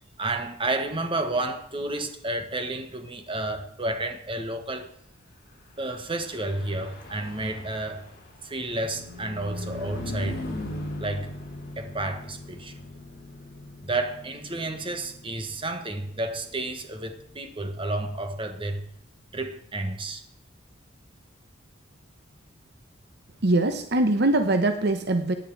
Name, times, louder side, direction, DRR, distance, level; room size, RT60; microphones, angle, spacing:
voice 1, 0.2-4.9 5.8-8.0 8.4-10.4 11.0-11.3 11.8-12.7 13.8-18.8 19.3-20.2, right 2 dB, 25° right, 1.4 m, -31 dB
Car passing by / Truck, 5.9-19.6, left 1 dB, 45° left, 3.8 m, -41 dB
voice 2, 23.4-25.3, right 2 dB, 55° right, 1.0 m, -22 dB
16.0 x 10.0 x 4.8 m
head